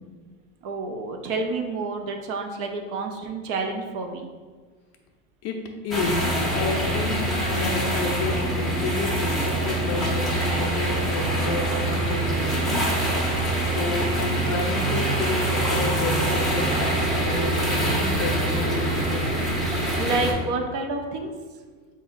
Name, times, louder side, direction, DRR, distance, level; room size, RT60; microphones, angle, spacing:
voice 1, 0.6-4.3 20.0-21.3, right 3 dB, 45° right, 4 dB, 0.5 m, -29 dB
voice 2, 5.4-12.9 13.6-19.7, left 3 dB, 40° left, 3 dB, 0.6 m, -31 dB
sound 1, 5.9-20.3, right 1 dB, ahead, 0.7 m, -24 dB
4.1 x 2.6 x 3.8 m, 1.5 s
supercardioid pair, 120°, 43 cm